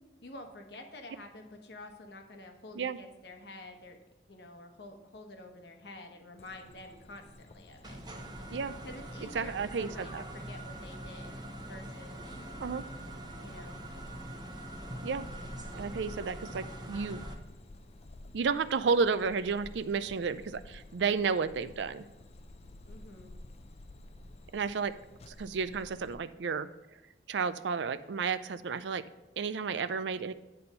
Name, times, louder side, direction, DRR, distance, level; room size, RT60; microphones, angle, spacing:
voice 1, 0.2-4.0 4.3-8.0 8.8-11.3 11.7-12.2 13.4-13.8 22.8-23.4, left 2 dB, 70° left, 4 dB, 1.1 m, -49 dB
sound 1, 6.4-26.2, left 1 dB, 35° left, 0.5 m, -52 dB
sound 2, 7.8-17.3, right 1 dB, 25° right, 0.9 m, -43 dB
voice 2, 9.3-10.2 12.6-12.8 15.0-15.2 15.7-17.3 18.3-22.0 24.5-25.0 25.3-26.7 27.3-29.0 29.4-30.3, right 5 dB, 85° right, 13 dB, 0.4 m, -32 dB
9.5 x 4.3 x 5.4 m, 1.1 s
head